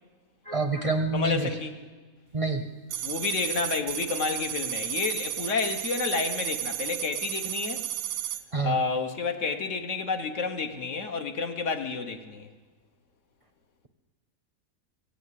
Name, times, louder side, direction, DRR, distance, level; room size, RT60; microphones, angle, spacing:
voice 1, 0.5-1.5 2.3-2.6 8.5-8.7, right 3 dB, 35° right, 0.5 m, -27 dB
voice 2, 1.1-1.8 3.0-7.9 8.6-12.5, left 4 dB, 65° left, 1.2 m, -30 dB
sound 1, 2.9-8.4, right 12 dB, 80° right, 1.0 m, -33 dB
16.5 x 8.4 x 8.0 m
omnidirectional pair, 1.5 m